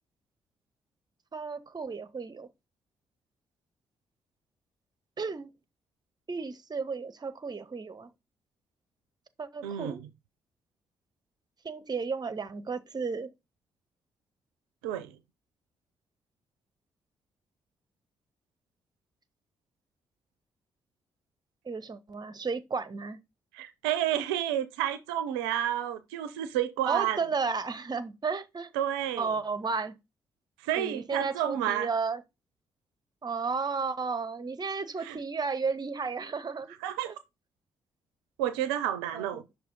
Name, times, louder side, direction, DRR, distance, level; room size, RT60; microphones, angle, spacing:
voice 1, 1.3-2.5 5.2-5.5 6.3-8.1 9.4-10.0 11.6-13.3 21.6-23.2 26.9-28.7 29.2-29.9 30.7-32.2 33.2-36.8 37.0-37.1 39.1-39.4, right 4 dB, 35° right, 0.9 m, -33 dB
voice 2, 9.6-10.0 14.8-15.1 23.5-27.2 28.7-29.3 30.6-31.9 35.0-35.2 36.8-37.1 38.4-39.4, right 11 dB, 85° right, 0.5 m, -30 dB
6.1 x 2.9 x 5.3 m
hypercardioid pair, 40°, 13 cm